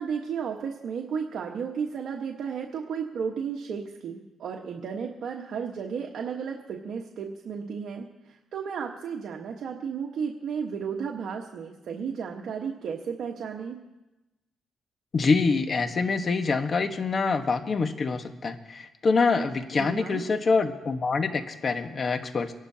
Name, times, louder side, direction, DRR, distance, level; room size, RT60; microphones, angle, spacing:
voice 1, 0.0-13.8 19.7-20.2, right 6 dB, 65° right, 1 dB, 1.3 m, -33 dB
voice 2, 15.1-22.5, left 4 dB, 40° left, 7 dB, 1.3 m, -25 dB
24.5 x 11.5 x 2.8 m, 1.0 s
cardioid pair, 90°, 0 cm